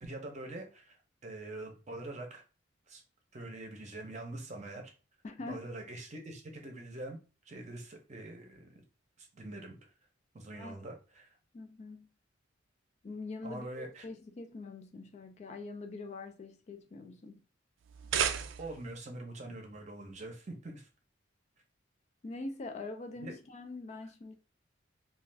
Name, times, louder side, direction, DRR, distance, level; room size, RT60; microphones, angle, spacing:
voice 1, 0.0-2.4 2.9-3.0 3.3-4.9 5.5-7.2 7.4-8.8 9.2-9.8 10.3-11.4 13.4-14.1 18.6-20.9 23.2-23.3, right 2 dB, 40° right, 0.7 m, -44 dB
voice 2, 5.2-5.7 10.5-10.9 11.5-12.1 13.0-17.4 22.2-24.3, left 3 dB, 35° left, 0.3 m, -44 dB
sound 1, 17.8-19.0, right 8 dB, 80° right, 0.3 m, -33 dB
2.4 x 2.3 x 3.3 m
head